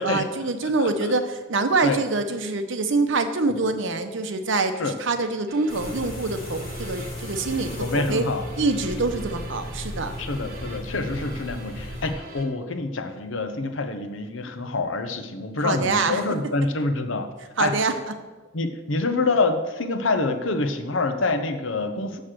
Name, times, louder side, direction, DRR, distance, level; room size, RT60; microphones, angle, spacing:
voice 1, 0.0-8.2 8.6-10.1 15.6-16.2 17.6-18.1, right 3 dB, 70° right, 8 dB, 0.8 m, -25 dB
voice 2, 0.6-1.1 1.8-2.0 4.8-4.9 7.8-8.4 10.2-17.3 17.6-17.8 18.5-22.2, left 3 dB, 70° left, 8 dB, 0.9 m, -26 dB
sound 1, 5.5-12.5, right 3 dB, 50° right, 1.4 m, -44 dB
sound 2, 5.7-12.1, left 1 dB, 50° left, 2.4 m, -35 dB
6.5 x 6.3 x 7.5 m, 1.2 s
head